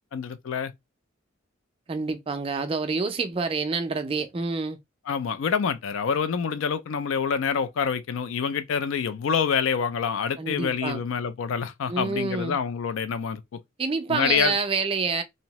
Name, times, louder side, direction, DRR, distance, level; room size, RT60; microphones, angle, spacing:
voice 1, 0.1-0.7 5.1-13.6 14.1-14.5, left 6 dB, 75° left, 0.4 m, -26 dB
voice 2, 1.9-4.8 10.4-11.0 11.9-12.6 13.8-15.2, right 4 dB, 25° right, 0.3 m, -27 dB
2.6 x 2.0 x 2.9 m
head